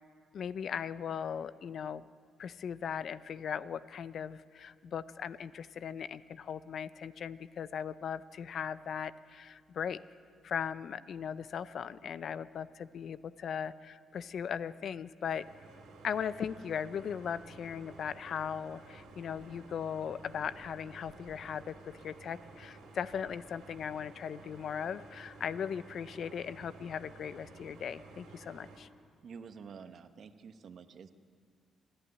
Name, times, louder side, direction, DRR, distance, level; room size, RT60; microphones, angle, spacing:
voice 1, 0.3-2.1 2.4-10.0 10.4-15.4 16.0-28.9, left 7 dB, 60° left, 15 dB, 0.6 m, -38 dB
sound 1, 15.2-28.8, right 3 dB, 85° right, 3.4 m, -53 dB
voice 2, 29.2-31.1, right 6 dB, 55° right, 9 dB, 1.1 m, -49 dB
26.0 x 11.0 x 9.8 m, 2.1 s
cardioid pair, 90°, 0 cm